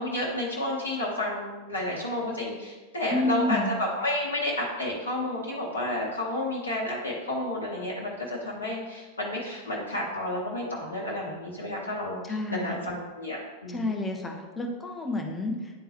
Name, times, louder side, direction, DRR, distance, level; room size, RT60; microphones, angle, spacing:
voice 1, 0.0-12.2 12.5-14.1, left 1 dB, 70° left, -3 dB, 0.9 m, -31 dB
voice 2, 3.1-3.7 12.2-12.9 13.7-15.8, left 2 dB, 15° left, 2 dB, 0.9 m, -30 dB
9.7 x 3.7 x 2.9 m, 1.3 s
figure-of-eight pair, 90°, 0 cm